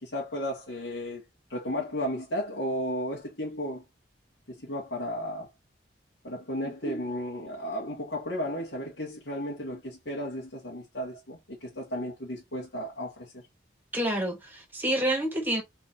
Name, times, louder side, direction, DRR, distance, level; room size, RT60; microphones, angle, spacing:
voice 1, 0.0-1.2 1.5-3.8 4.5-5.5 6.2-13.4, equal, 90° left, 2.0 m, -34 dB
voice 2, 13.9-15.6, right 1 dB, 10° right, 1.4 m, -28 dB
4.4 x 3.7 x 2.8 m
head